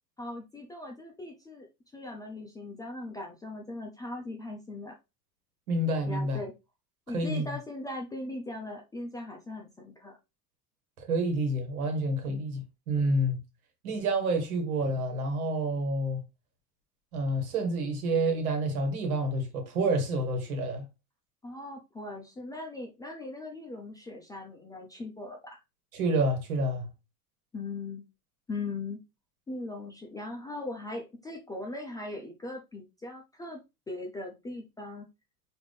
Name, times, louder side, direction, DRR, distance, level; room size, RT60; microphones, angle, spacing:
voice 1, 0.2-4.9 6.1-6.5 7.1-10.2 12.3-12.5 21.4-25.6 27.5-28.0 28.5-29.0 29.5-33.6 33.9-35.1, left 2 dB, 10° left, 0.5 m, -39 dB
voice 2, 5.7-6.4 7.1-7.5 11.0-13.4 13.8-16.2 17.1-20.8 25.9-26.9, right 1 dB, 60° right, 1.6 m, -28 dB
5.0 x 2.9 x 3.4 m
figure-of-eight pair, 75°, 48 cm